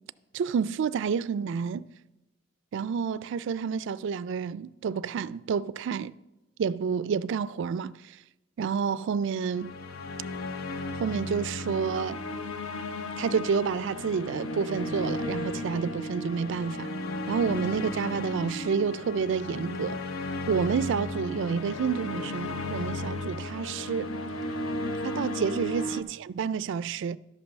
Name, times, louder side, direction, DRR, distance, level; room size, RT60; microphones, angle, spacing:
voice 1, 0.3-1.9 2.7-6.1 6.6-7.9 8.6-9.7 11.0-12.2 13.2-16.9 17.3-20.0 20.5-24.1 25.0-27.2, right 6 dB, 65° right, 0.3 m, -29 dB
sound 1, 9.5-26.0, left 2 dB, 85° left, 0.8 m, -34 dB
11.5 x 5.3 x 7.1 m
head